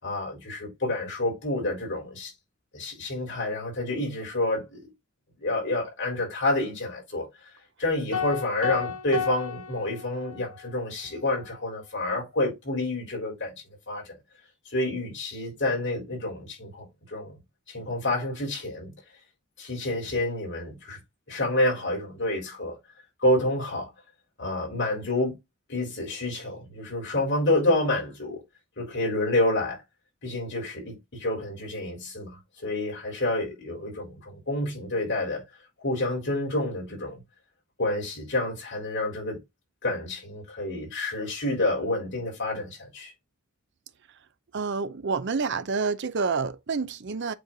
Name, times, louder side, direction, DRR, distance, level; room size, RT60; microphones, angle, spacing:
voice 1, 0.0-2.3 2.7-4.8 5.4-7.3 7.8-13.5 13.9-14.1 14.7-17.4 17.7-18.9 19.6-21.0 21.3-22.8 23.2-23.9 24.4-25.3 25.7-28.4 28.8-29.8 30.2-35.4 35.8-37.2 37.8-39.4 39.8-43.1, left 1 dB, 55° left, 4.0 m, -28 dB
sound 1, 8.1-10.6, left 7 dB, 80° left, 1.4 m, -33 dB
voice 2, 44.5-47.3, right 4 dB, 50° right, 0.6 m, -28 dB
8.1 x 3.2 x 3.9 m
head